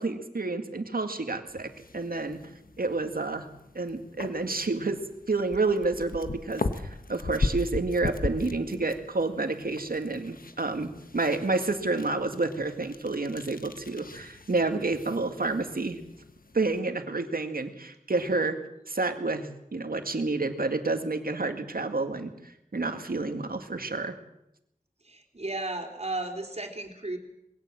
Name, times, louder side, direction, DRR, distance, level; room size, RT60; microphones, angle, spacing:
voice 1, 0.0-2.4 2.8-3.5 3.8-5.0 5.3-16.0 16.5-18.6 18.9-24.2, right 3 dB, 85° right, 7 dB, 2.0 m, -29 dB
sound 1, 1.5-16.8, left 3 dB, 75° left, 1.3 m, -38 dB
voice 2, 25.0-27.2, right 2 dB, 45° right, 4 dB, 3.6 m, -34 dB
21.5 x 17.0 x 7.6 m, 0.83 s
wide cardioid pair, 60°, 15 cm